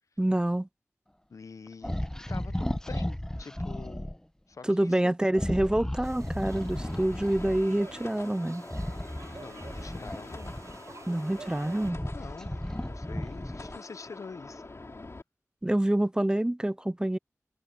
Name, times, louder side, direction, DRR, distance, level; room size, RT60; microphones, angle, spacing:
voice 1, 0.2-0.7 4.6-8.7 11.1-12.0 15.6-17.2, right 1 dB, 15° right, 0.3 m, -27 dB
voice 2, 1.3-4.1 4.5-5.0 9.4-10.5 12.1-14.6, left 4 dB, 85° left, 0.6 m, -46 dB
sound 1, 1.8-4.2 5.3-7.7 8.6-10.9 11.5-13.9, left 1 dB, 10° left, 0.8 m, -35 dB
sound 2, 6.0-11.9, right 4 dB, 65° right, 0.6 m, -48 dB
sound 3, 6.4-15.2, left 2 dB, 55° left, 3.9 m, -46 dB
wide cardioid pair, 45°, 5 cm